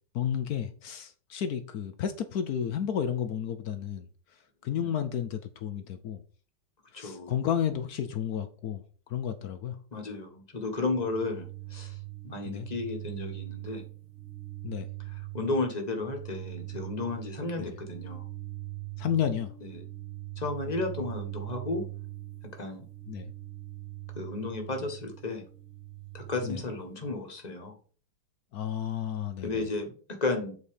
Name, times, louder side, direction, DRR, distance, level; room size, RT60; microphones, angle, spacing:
voice 1, 0.1-4.1 4.6-6.2 6.9-8.8 9.1-9.8 12.5-12.7 14.6-14.9 17.6-17.7 19.0-19.5 23.1-23.3 26.4-26.6 28.5-29.7, left 9 dB, 65° left, 0.9 m, -32 dB
voice 2, 6.9-7.4 9.9-12.0 12.2-13.8 15.0-18.3 19.6-19.9 20.4-21.9 22.6-22.9 24.1-25.5 26.1-27.8 29.4-30.6, left 3 dB, 25° left, 1.2 m, -33 dB
sound 1, 10.9-27.1, right 18 dB, 35° right, 1.2 m, -42 dB
8.1 x 4.2 x 5.1 m
omnidirectional pair, 2.3 m